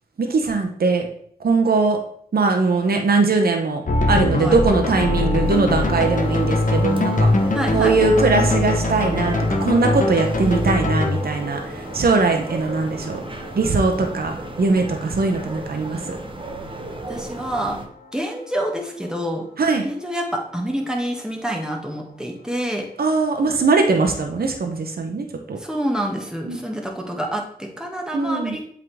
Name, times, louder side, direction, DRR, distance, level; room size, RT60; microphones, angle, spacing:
voice 1, 0.2-1.1 1.4-2.0 2.3-7.3 7.7-13.2 13.5-16.2 19.6-19.8 23.0-25.6 26.4-26.6 28.1-28.6, right 3 dB, 70° right, 4 dB, 0.8 m, -20 dB
sound 1, 3.9-16.5, left 2 dB, 55° left, 1.0 m, -23 dB
sound 2, 5.4-17.9, right 2 dB, 30° right, 1.0 m, -34 dB
voice 2, 7.5-7.9 17.1-17.8 18.1-19.5 19.8-22.9 25.6-28.6, equal, 5° right, 0 dB, 1.6 m, -27 dB
7.6 x 3.7 x 3.5 m, 0.62 s
cardioid pair, 45°, 16 cm